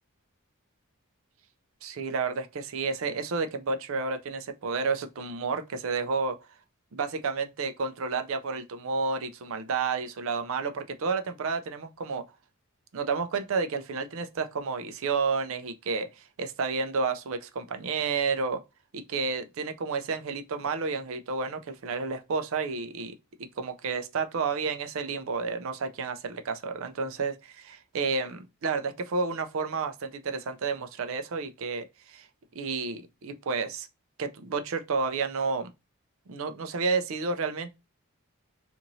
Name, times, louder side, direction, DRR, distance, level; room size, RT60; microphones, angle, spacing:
voice 1, 1.8-6.4 6.9-12.2 12.9-18.6 18.9-23.1 23.6-32.3 32.5-33.9 34.2-35.7 36.3-37.7, right 4 dB, 65° right, 0.4 m, -31 dB
3.0 x 2.5 x 2.6 m
head